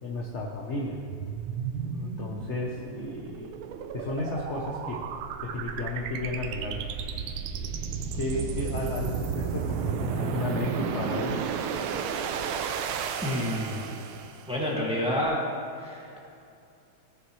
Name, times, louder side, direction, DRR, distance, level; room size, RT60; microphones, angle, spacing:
voice 1, 0.0-1.0 1.7-3.5 3.9-5.0 5.4-6.9 7.6-11.4, left 2 dB, 50° left, -2 dB, 0.9 m, -33 dB
sound 1, 1.1-14.5, right 7 dB, 90° right, 1.5 m, -33 dB
voice 2, 13.2-13.9 14.5-15.4 15.8-16.2, left 1 dB, 5° right, -5 dB, 1.7 m, -29 dB
17.0 x 6.8 x 3.2 m, 2.6 s
omnidirectional pair, 2.3 m